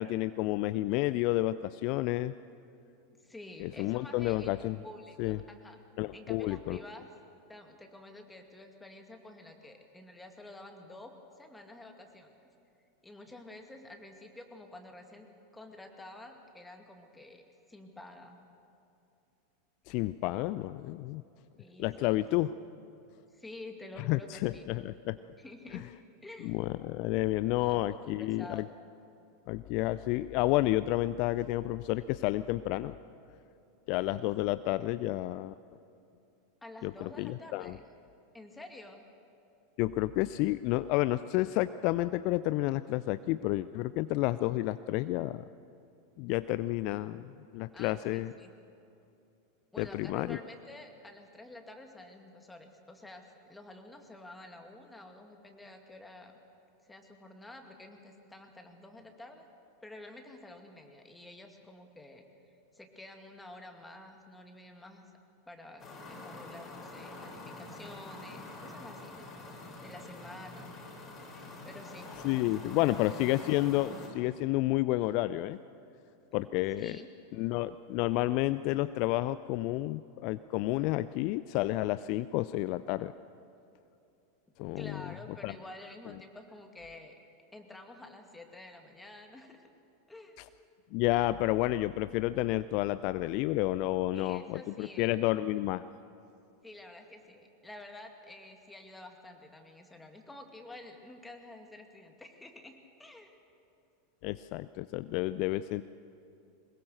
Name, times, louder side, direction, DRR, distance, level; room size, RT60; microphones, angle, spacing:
voice 1, 0.0-2.3 3.6-4.8 5.2-5.4 6.0-6.8 19.9-21.2 21.8-22.5 24.1-25.2 25.7-25.8 26.4-28.6 29.5-32.9 33.9-35.5 36.8-37.8 39.8-45.4 46.2-48.3 49.8-50.4 72.2-75.6 76.3-77.0 77.4-83.1 84.6-85.0 85.4-85.5 90.9-95.8 104.2-105.8, left 17 dB, 50° left, 15 dB, 0.4 m, -30 dB
voice 2, 3.2-5.8 6.1-7.1 7.5-12.3 13.0-15.3 15.5-17.4 17.7-18.4 21.6-22.2 23.3-24.6 25.4-25.9 26.2-26.6 27.6-27.8 28.2-28.6 36.6-37.8 38.3-39.0 47.7-48.5 49.7-56.3 56.8-59.5 59.8-65.1 65.5-69.3 69.8-70.7 71.6-72.1 72.6-72.7 76.8-77.1 84.8-87.1 87.5-89.7 90.1-90.4 94.1-95.1 96.6-103.4, left 2 dB, 10° left, 4 dB, 2.3 m, -49 dB
sound 1, 65.8-74.1, left 2 dB, 25° left, 4.9 m, -46 dB
22.5 x 21.0 x 6.6 m, 2.7 s
figure-of-eight pair, 85°, 0 cm